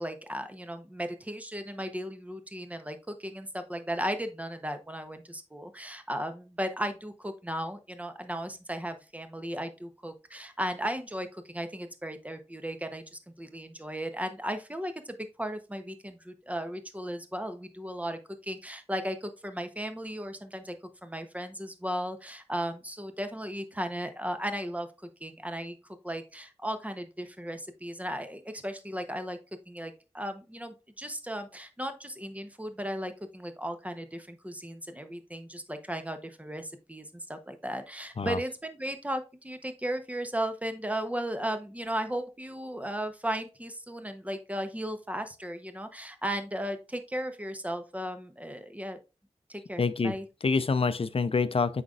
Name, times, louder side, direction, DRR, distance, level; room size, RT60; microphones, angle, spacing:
voice 1, 0.0-20.8 21.0-24.9 25.2-25.8 26.0-29.4 29.7-49.0 49.5-50.2, equal, 10° right, 0.8 m, -36 dB
voice 2, 49.8-50.1 50.4-51.8, left 4 dB, 55° left, 0.4 m, -26 dB
8.0 x 5.1 x 2.4 m
wide cardioid pair, 70°, 12 cm